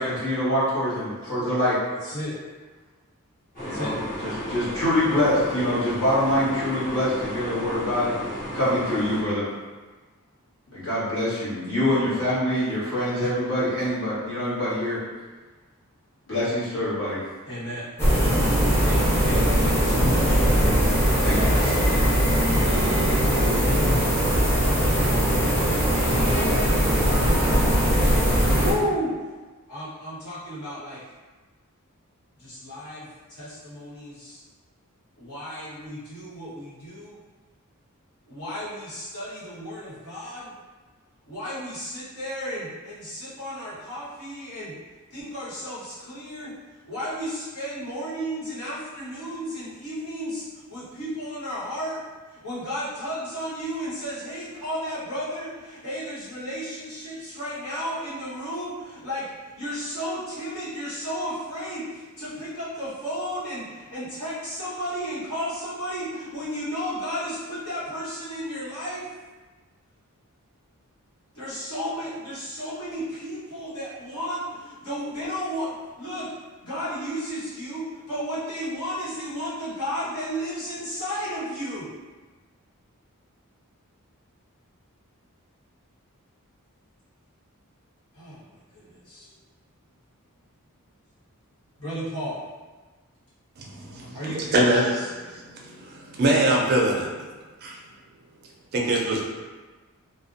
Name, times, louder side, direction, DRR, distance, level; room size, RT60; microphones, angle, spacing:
voice 1, 0.0-1.8 3.6-3.9 4.2-8.1 8.5-9.4 10.7-15.0 16.3-17.2 20.6-20.7 21.2-21.4, left 1 dB, 60° left, -11 dB, 1.2 m, -25 dB
voice 2, 2.0-2.4 3.7-3.9 11.7-12.3 13.2-13.3 17.5-17.8 18.8-20.4 21.3-21.9 28.6-29.3 29.7-31.0 32.4-34.4 35.2-37.2 38.3-40.5 41.3-44.7 45.1-46.5 46.9-50.4 50.7-52.0 52.4-59.2 59.6-61.8 62.2-69.0 71.3-76.3 76.6-81.9 88.1-88.4 88.7-89.3 91.8-92.4 94.1-94.9, equal, 85° left, -11 dB, 1.2 m, -33 dB
sound 1, 3.5-9.2, equal, 40° left, 0.9 m, -34 dB
sound 2, 18.0-28.7, equal, 10° left, 0.5 m, -20 dB
voice 3, 93.6-97.1 97.6-97.8 98.7-99.2, right 1 dB, 45° right, -1 dB, 0.4 m, -24 dB
2.4 x 2.1 x 2.5 m, 1.3 s
head